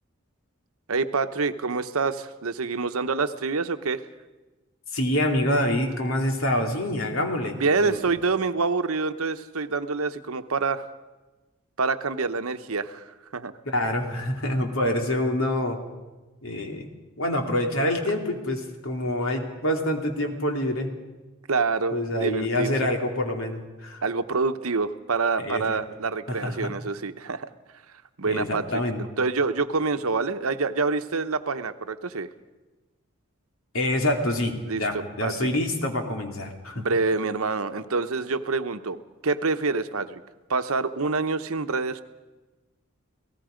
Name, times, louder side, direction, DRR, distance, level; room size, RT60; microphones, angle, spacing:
voice 1, 0.9-4.0 7.6-10.9 11.8-13.0 13.3-13.5 21.5-22.7 24.0-27.5 28.2-28.8 29.2-32.3 34.6-35.3 36.7-39.0 39.2-40.2 40.5-42.0, right 4 dB, 85° right, 9 dB, 1.0 m, -26 dB
voice 2, 4.9-8.0 13.6-15.8 16.4-16.9 17.2-20.9 21.9-24.0 25.4-25.8 26.3-26.7 28.2-29.0 33.7-36.8, left 1 dB, 75° left, 3 dB, 2.7 m, -26 dB
29.5 x 18.0 x 5.1 m, 1.2 s
head